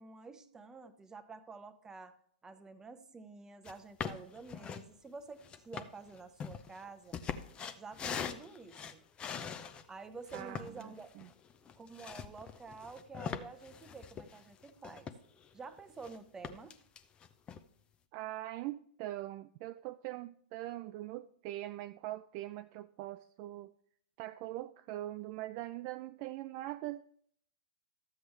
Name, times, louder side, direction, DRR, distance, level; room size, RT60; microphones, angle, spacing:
voice 1, 0.0-2.1 2.4-7.2 7.8-9.0 9.9-11.1 11.7-15.1 15.5-16.8, right 4 dB, 10° right, 10 dB, 0.8 m, -49 dB
sound 1, 3.7-3.8 4.0-4.9 5.4-9.8 10.3-15.5 15.8-16.2 16.4-17.6, left 7 dB, 20° left, 0.6 m, -42 dB
voice 2, 10.3-11.3 18.1-23.7 24.2-27.0, right 15 dB, 40° right, 10 dB, 0.3 m, -42 dB
12.5 x 7.8 x 3.3 m, 0.62 s
figure-of-eight pair, 110°, 5 cm